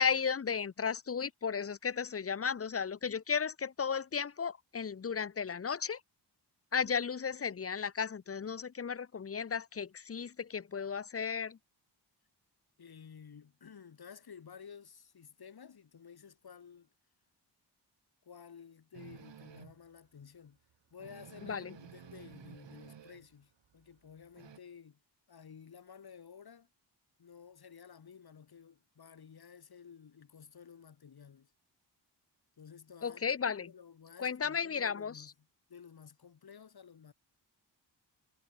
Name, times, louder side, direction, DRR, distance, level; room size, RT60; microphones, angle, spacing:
voice 1, 0.0-6.0 6.7-11.6 21.4-21.7 33.0-33.7 34.2-35.3, left 6 dB, 35° left, 0.8 m, -34 dB
voice 2, 12.8-16.9 18.2-20.6 20.9-25.0 25.3-26.7 27.2-31.5 32.6-33.2 33.7-35.3 35.7-37.1, left 7 dB, 60° left, 3.3 m, -53 dB
sound 1, 18.9-19.9 20.3-20.4 20.7-20.8 21.0-23.3 23.6-24.6, right 9 dB, 85° right, 2.3 m, -53 dB
wide cardioid pair, 155°, 43 cm